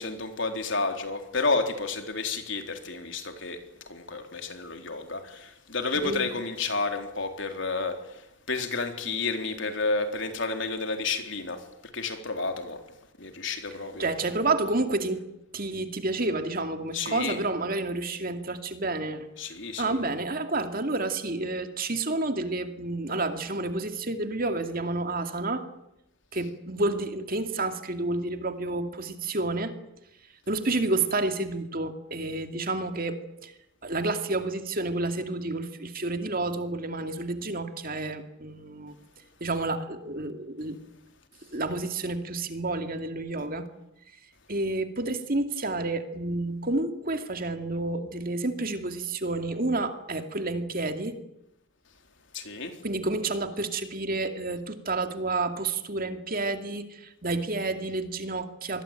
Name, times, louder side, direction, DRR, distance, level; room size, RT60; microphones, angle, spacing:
voice 1, 0.0-3.6 3.9-11.6 11.9-12.8 13.2-14.1 16.9-17.4 19.4-20.0 52.3-52.8, left 3 dB, 60° left, 5 dB, 3.9 m, -31 dB
voice 2, 14.0-15.2 15.5-19.3 19.8-25.6 26.3-29.7 30.5-33.5 33.8-39.0 39.4-40.8 41.5-43.7 44.5-51.2 52.8-58.8, right 2 dB, 45° right, 7 dB, 2.4 m, -30 dB
26.0 x 21.0 x 9.1 m, 0.86 s
head